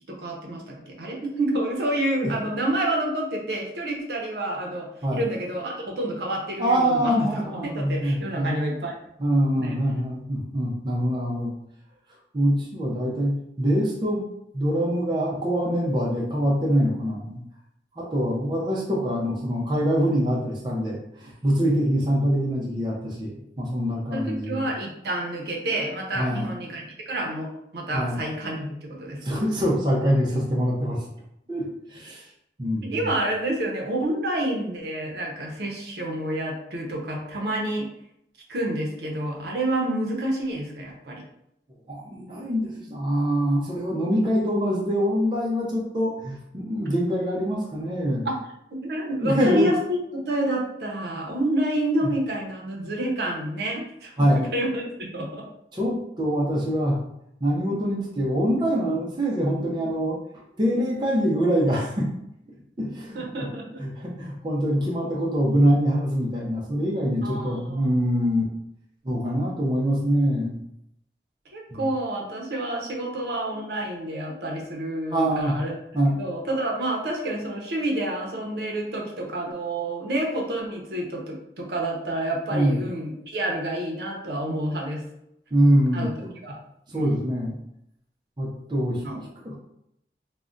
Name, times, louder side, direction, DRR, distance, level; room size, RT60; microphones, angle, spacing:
voice 1, 0.1-8.9 9.4-9.8 24.1-29.2 32.9-37.9 38.5-41.2 48.2-48.3 48.7-55.5 63.1-63.8 67.2-67.9 71.5-75.8 76.2-85.0 85.9-86.1 86.4-86.6 86.9-87.2 89.0-89.2, right 1 dB, 70° right, 0 dB, 0.6 m, -28 dB
voice 2, 6.6-8.5 9.2-11.5 12.3-14.2 14.5-17.4 17.9-24.7 26.2-26.5 27.9-28.2 29.2-31.0 31.5-32.3 32.6-33.1 41.9-48.3 49.2-49.7 52.0-52.1 54.2-54.4 55.7-57.0 57.4-60.2 60.6-62.1 62.8-63.5 63.8-68.5 69.0-70.6 71.7-71.9 75.1-75.6 75.9-76.2 82.5-82.8 85.5-86.3 86.9-87.6 88.4-89.6, equal, 25° right, -4 dB, 0.5 m, -24 dB
2.4 x 2.1 x 3.7 m, 0.79 s
head